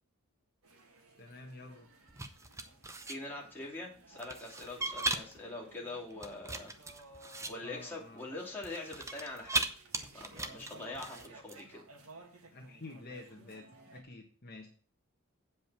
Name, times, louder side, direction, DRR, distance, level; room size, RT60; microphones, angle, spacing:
sound 1, 0.6-14.0, right 2 dB, 80° right, 2.0 m, -57 dB
voice 1, 1.2-1.9 7.6-8.2 12.5-14.7, left 2 dB, 45° left, 1 dB, 1.5 m, -49 dB
sound 2, 2.1-3.2 4.2-5.4 6.1-7.5 8.6-9.7 9.9-11.6, right 2 dB, 15° right, 0.7 m, -37 dB
voice 2, 3.1-6.7 7.5-9.7 10.1-11.8, left 2 dB, 10° left, -4 dB, 2.7 m, -43 dB
8.5 x 5.2 x 7.5 m, 0.41 s
head